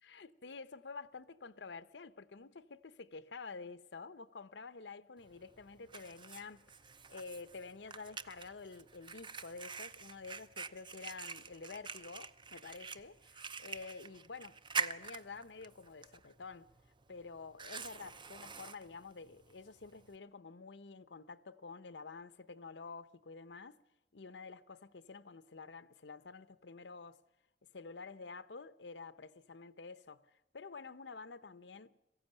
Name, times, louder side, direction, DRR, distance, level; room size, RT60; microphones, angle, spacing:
voice 1, 0.0-6.7 7.1-16.7 17.1-23.8 24.1-27.2 27.7-31.9, left 4 dB, 85° left, 0.8 m, -49 dB
Fire, 5.2-20.2, right 5 dB, 30° right, 0.7 m, -46 dB
22.0 x 15.0 x 9.0 m
head